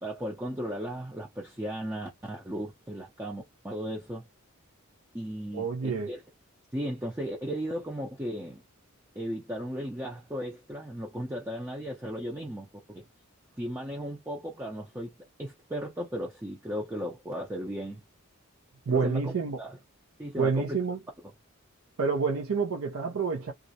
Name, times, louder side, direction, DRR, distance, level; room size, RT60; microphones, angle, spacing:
voice 1, 0.0-4.3 5.1-6.2 6.7-8.6 9.2-13.0 13.6-15.1 15.4-18.0 18.9-19.3 19.6-19.8 20.2-20.8, equal, 10° right, 0.5 m, -36 dB
voice 2, 5.5-6.1 18.9-19.6 20.4-21.0 22.0-23.5, right 5 dB, 80° right, 0.5 m, -28 dB
2.4 x 2.0 x 2.6 m
head